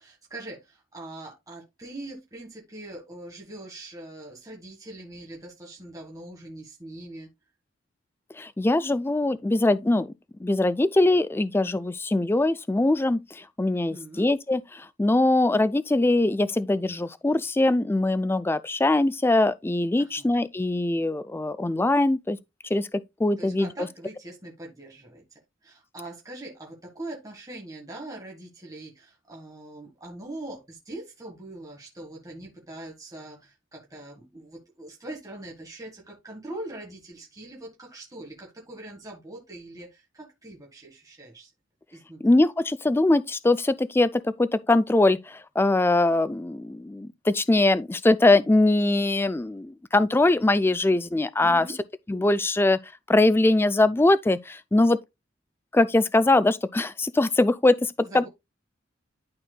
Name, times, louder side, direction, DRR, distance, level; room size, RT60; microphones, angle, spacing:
voice 1, 0.0-7.3 13.7-14.3 20.0-20.3 23.4-25.2 25.6-41.5 41.9-42.2 51.4-51.8 58.0-58.3, right 1 dB, 20° right, 1.6 m, -42 dB
voice 2, 8.4-10.1 10.4-22.4 22.7-23.7 42.2-51.6 52.1-52.8 53.1-55.0 55.7-58.3, left 2 dB, 10° left, 0.3 m, -22 dB
11.5 x 4.2 x 2.2 m
head